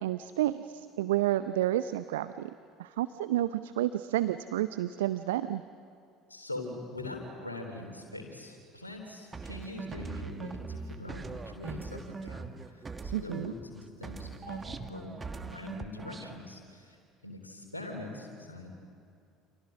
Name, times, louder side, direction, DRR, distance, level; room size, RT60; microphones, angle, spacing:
voice 1, 0.0-2.5 2.8-5.6 13.1-13.5, right 13 dB, 70° right, 13 dB, 0.6 m, -30 dB
voice 2, 6.3-17.0 17.2-18.8, left 2 dB, 85° left, 3 dB, 3.6 m, -43 dB
sound 1, 9.3-13.7 14.0-16.4, right 4 dB, 25° right, 1.5 m, -41 dB
29.0 x 28.0 x 6.2 m, 2.4 s
figure-of-eight pair, 60°, 0 cm